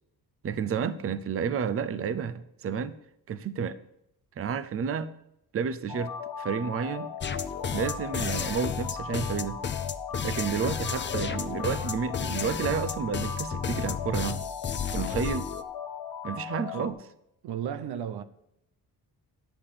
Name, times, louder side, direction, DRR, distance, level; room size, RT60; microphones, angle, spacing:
voice 1, 0.4-3.0 3.3-3.8 4.4-5.1 5.5-6.1 6.4-7.1 7.7-9.6 10.2-14.4 14.9-15.5 16.2-17.0, right 6 dB, 35° right, 0.5 m, -31 dB
sound 1, 5.9-16.9, left 7 dB, 70° left, 1.2 m, -38 dB
sound 2, 7.2-15.6, left 6 dB, 30° left, 0.5 m, -32 dB
voice 2, 17.4-18.2, right 9 dB, 90° right, 0.7 m, -34 dB
10.0 x 6.9 x 5.6 m
cardioid pair, 130°, 38 cm